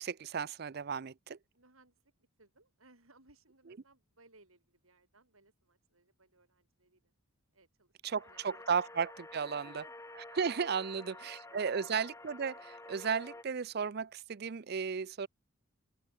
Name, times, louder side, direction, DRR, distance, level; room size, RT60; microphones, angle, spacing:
voice 1, 0.0-1.4 8.0-9.8 10.3-15.3, right 6 dB, 50° right, 0.5 m, -34 dB
voice 2, 1.5-2.1 2.4-7.1 7.5-8.9 9.3-10.5 10.8-11.9, right 2 dB, 85° right, 7.4 m, -65 dB
sound 1, 8.1-13.4, left 2 dB, 15° left, 1.7 m, -50 dB
open air
head